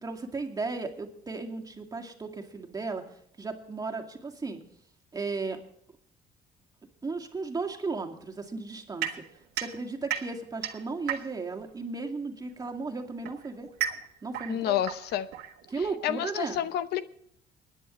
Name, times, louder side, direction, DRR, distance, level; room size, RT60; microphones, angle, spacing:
voice 1, 0.0-3.0 3.4-4.6 5.1-5.6 7.0-9.1 9.6-13.7 14.2-14.8 15.7-16.6, right 4 dB, 20° right, 3 dB, 2.2 m, -35 dB
sound 1, 9.0-11.6 12.6-16.0, right 10 dB, 75° right, 1.6 m, -36 dB
voice 2, 14.5-15.3 16.0-17.0, left 11 dB, 75° left, 13 dB, 0.8 m, -29 dB
25.0 x 10.0 x 3.1 m, 0.70 s
cardioid pair, 110°, 17 cm